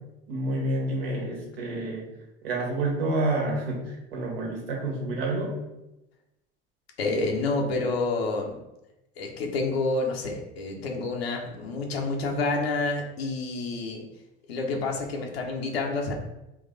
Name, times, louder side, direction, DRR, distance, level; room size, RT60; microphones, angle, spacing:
voice 1, 0.3-2.1 2.4-5.6, right 2 dB, 75° right, -1 dB, 1.4 m, -29 dB
voice 2, 7.0-8.6 9.2-14.1 14.5-16.1, left 3 dB, 80° left, 1 dB, 0.8 m, -28 dB
4.0 x 2.4 x 3.9 m, 0.92 s
hypercardioid pair, 70°, 30 cm